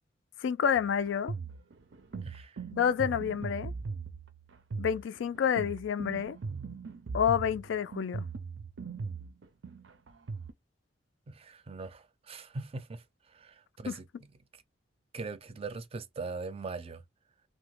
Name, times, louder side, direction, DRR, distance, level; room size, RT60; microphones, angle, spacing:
voice 1, 0.4-1.3 2.7-3.7 4.8-6.4 7.1-8.3 13.9-14.0, left 8 dB, 70° left, 0.3 m, -29 dB
sound 1, 0.8-10.5, right 4 dB, 80° right, 0.5 m, -40 dB
voice 2, 2.2-2.6 11.3-13.0 13.3-14.1 15.1-17.0, right 3 dB, 30° right, 0.4 m, -41 dB
2.8 x 2.1 x 3.0 m
head